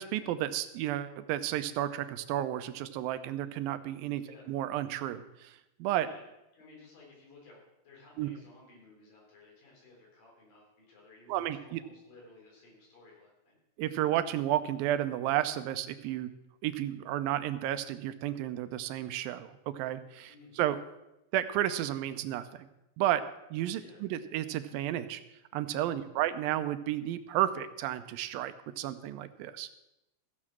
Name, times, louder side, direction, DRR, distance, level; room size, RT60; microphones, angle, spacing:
voice 1, 0.0-4.2 4.5-5.5 5.8-6.1 8.2-8.3 11.3-11.8 13.8-16.3 16.6-20.3 20.6-20.8 21.3-22.7 23.0-23.2 23.5-25.2 25.5-29.7, right 12 dB, 85° right, 11 dB, 2.4 m, -32 dB
voice 2, 6.5-13.6 20.3-20.6 23.8-24.0 25.9-26.3, left 3 dB, 70° left, -2 dB, 5.6 m, -56 dB
15.0 x 7.4 x 6.1 m, 0.91 s
omnidirectional pair, 4.1 m